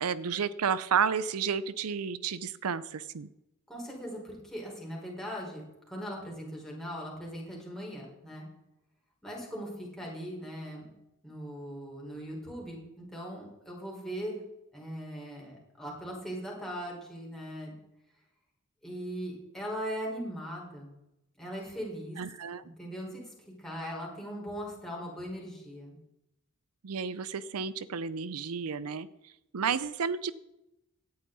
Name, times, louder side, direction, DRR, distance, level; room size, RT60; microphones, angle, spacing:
voice 1, 0.0-3.3 22.2-22.6 26.8-30.3, right 6 dB, 80° right, 16 dB, 0.6 m, -31 dB
voice 2, 3.7-8.5 9.2-10.9 11.2-14.4 14.7-17.7 18.8-20.9 21.4-22.2 22.6-26.0, equal, ahead, -3 dB, 4.8 m, -39 dB
17.0 x 10.5 x 4.1 m, 0.89 s
head